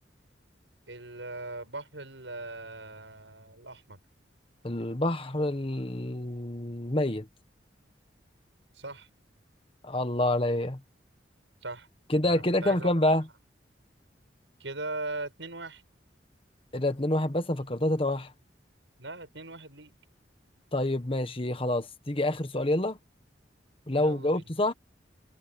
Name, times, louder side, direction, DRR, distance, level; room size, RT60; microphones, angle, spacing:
voice 1, 0.9-4.0 8.7-9.1 11.6-11.9 12.2-12.9 14.6-15.8 19.0-19.9 24.0-24.4, right 2 dB, 80° right, 7.8 m, -39 dB
voice 2, 4.6-7.3 9.8-10.8 12.1-13.3 16.7-18.3 20.7-23.0 23.9-24.7, left 1 dB, 30° left, 1.5 m, -27 dB
head